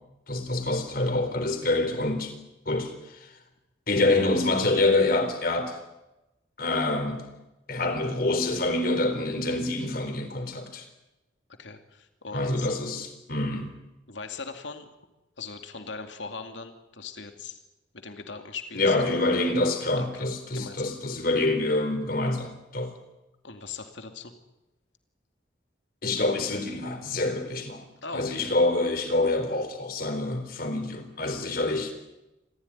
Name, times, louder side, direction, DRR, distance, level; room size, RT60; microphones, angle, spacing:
voice 1, 0.3-2.3 2.7-3.3 3.9-5.8 6.6-7.3 7.7-10.9 12.3-13.8 18.7-22.9 26.0-27.8 28.1-31.9, left 2 dB, 50° left, 6 dB, 4.0 m, -26 dB
voice 2, 11.6-12.7 14.1-14.9 15.4-17.6 17.9-19.0 20.0-20.3 20.5-20.9 23.4-24.3 28.0-28.5 31.3-31.5, left 4 dB, 80° left, 6 dB, 2.5 m, -40 dB
27.0 x 15.5 x 10.0 m, 0.99 s
head